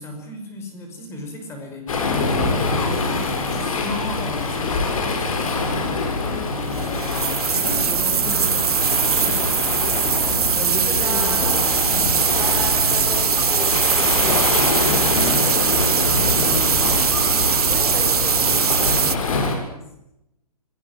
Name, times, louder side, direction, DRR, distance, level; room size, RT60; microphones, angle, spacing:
voice 1, 0.0-6.0 6.3-12.4 15.1-15.5 16.4-17.2 19.5-20.1, left 2 dB, 15° left, 4 dB, 5.6 m, -35 dB
Waves surf, 1.9-19.6, left 3 dB, 60° left, 7.1 m, -24 dB
sound 1, 6.7-19.2, right 8 dB, 75° right, 0.8 m, -21 dB
voice 2, 9.8-10.4 10.9-11.4 12.3-14.8 15.5-16.0 16.8-16.9 17.3-19.4, right 1 dB, 5° right, -1 dB, 4.7 m, -35 dB
26.0 x 18.5 x 9.3 m, 0.84 s
hypercardioid pair, 150°, 20 cm